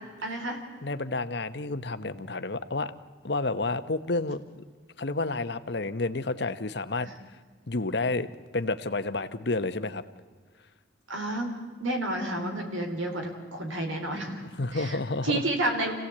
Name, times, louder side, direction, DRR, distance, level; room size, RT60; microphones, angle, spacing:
voice 1, 0.2-0.6 7.0-7.1 11.1-11.5 11.8-14.4 14.7-15.0 15.2-15.9, right 1 dB, 90° right, 4 dB, 4.0 m, -30 dB
voice 2, 0.8-2.9 3.2-4.6 5.0-7.1 7.7-8.3 8.5-10.0 14.6-15.4, left 2 dB, 55° left, 11 dB, 1.0 m, -30 dB
26.5 x 16.5 x 8.6 m, 1.5 s
head